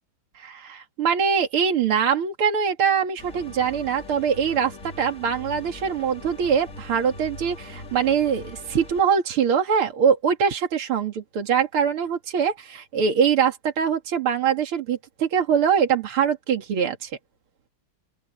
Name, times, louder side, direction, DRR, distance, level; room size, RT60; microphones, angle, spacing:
voice 1, 0.4-17.1, right 7 dB, 75° right, 3.0 m, -23 dB
sound 1, 3.2-9.0, left 2 dB, 35° left, 3.4 m, -41 dB
open air
omnidirectional pair, 2.4 m